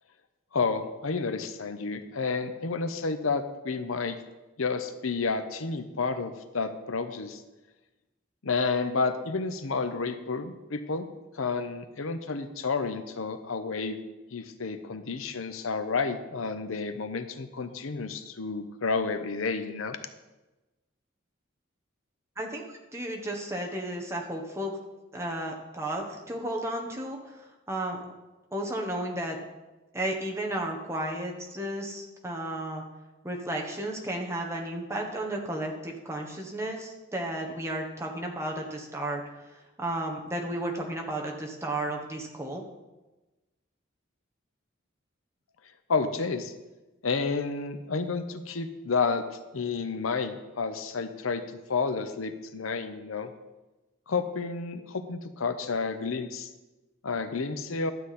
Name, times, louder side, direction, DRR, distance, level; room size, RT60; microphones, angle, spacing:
voice 1, 0.5-4.2 4.6-7.4 8.4-11.1 11.3-14.0 14.3-20.0 45.9-46.5 47.0-49.2 49.5-51.4 51.7-53.3 54.1-56.5 57.0-57.9, left 4 dB, 85° left, 9 dB, 0.8 m, -30 dB
voice 2, 22.4-24.8 25.1-28.0 28.5-29.4 29.9-32.8 33.2-39.2 39.8-42.6, right 1 dB, 15° right, 0 dB, 1.2 m, -33 dB
12.0 x 8.1 x 4.2 m, 1.1 s
head